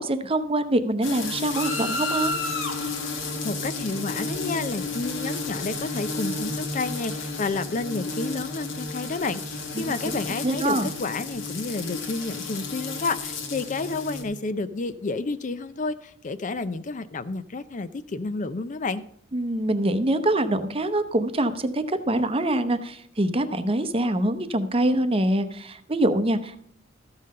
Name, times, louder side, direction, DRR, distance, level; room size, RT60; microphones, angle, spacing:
voice 1, 0.0-2.3 9.8-10.2 10.4-10.9 19.3-26.6, right 1 dB, 30° right, 10 dB, 0.8 m, -24 dB
sound 1, 1.0-14.2, left 3 dB, 70° left, 1.8 m, -32 dB
voice 2, 3.4-19.0, left 3 dB, 40° left, 13 dB, 0.5 m, -30 dB
13.5 x 5.6 x 6.5 m, 0.68 s
head